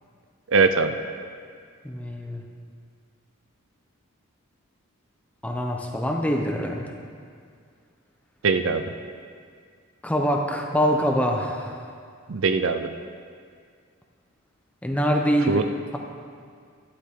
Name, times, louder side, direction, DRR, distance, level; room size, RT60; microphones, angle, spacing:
voice 1, 0.5-1.0 8.4-8.9 12.3-12.9 15.5-15.6, right 4 dB, 60° right, 8 dB, 0.5 m, -21 dB
voice 2, 1.8-2.4 5.4-6.9 10.0-11.8 14.8-15.6, equal, 5° left, 1 dB, 0.8 m, -24 dB
12.0 x 11.5 x 3.8 m, 2.1 s
head